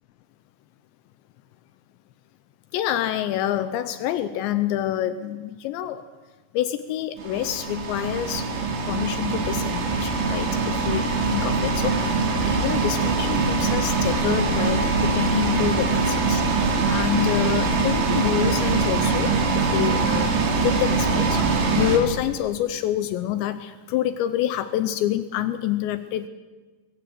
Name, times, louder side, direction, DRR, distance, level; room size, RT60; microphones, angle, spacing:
voice 1, 2.7-6.0 6.5-8.5 8.9-16.4 16.9-19.3 19.7-20.3 20.6-26.3, left 12 dB, 80° left, 11 dB, 2.8 m, -27 dB
sound 1, 7.2-22.0, right 4 dB, 70° right, 5.0 m, -23 dB
22.5 x 16.0 x 7.8 m, 1.3 s
omnidirectional pair, 5.5 m